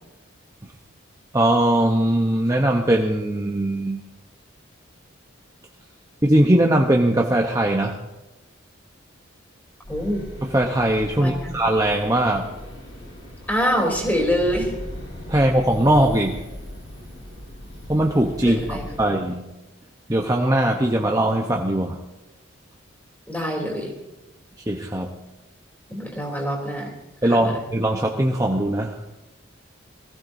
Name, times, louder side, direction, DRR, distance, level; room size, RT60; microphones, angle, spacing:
voice 1, 1.3-4.0 6.2-8.0 10.4-12.5 15.3-16.4 17.9-19.5 20.1-22.0 24.7-25.1 27.2-29.1, right 1 dB, 15° right, 1 dB, 0.8 m, -20 dB
sound 1, 9.8-19.1, left 1 dB, 55° left, 5.1 m, -38 dB
voice 2, 9.9-10.2 11.2-11.5 13.5-14.7 18.4-19.2 23.3-23.9 25.9-26.9 27.3-27.5, equal, 10° left, -1 dB, 3.2 m, -25 dB
22.5 x 15.5 x 2.7 m, 1.0 s
head